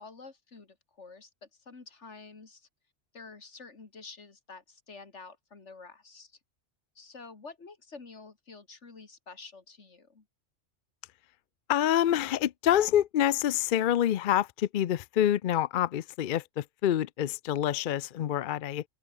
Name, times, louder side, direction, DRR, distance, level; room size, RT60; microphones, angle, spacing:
voice 1, 0.0-2.7 3.1-6.4 6.9-10.2, left 4 dB, 75° left, 2.7 m, -49 dB
voice 2, 11.7-18.8, left 11 dB, 60° left, 0.6 m, -27 dB
open air
omnidirectional pair, 1.2 m